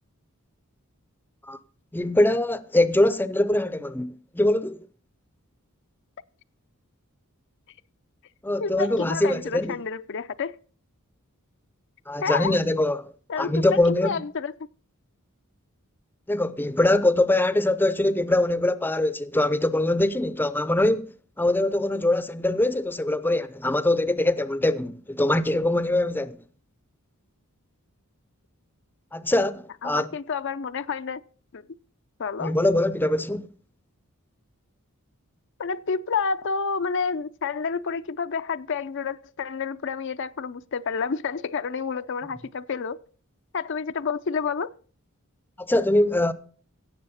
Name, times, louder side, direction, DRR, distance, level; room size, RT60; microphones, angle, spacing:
voice 1, 1.9-4.1 4.3-4.8 8.4-9.8 12.1-14.2 16.3-21.1 21.4-26.4 29.1-30.1 32.4-33.5 45.6-46.3, left 1 dB, 10° left, 0.6 m, -23 dB
voice 2, 8.6-10.6 12.2-12.6 13.3-14.5 29.8-31.2 31.5-31.6 32.2-32.6 35.6-43.0 43.5-44.7, left 5 dB, 55° left, 0.5 m, -29 dB
16.5 x 7.4 x 5.6 m
head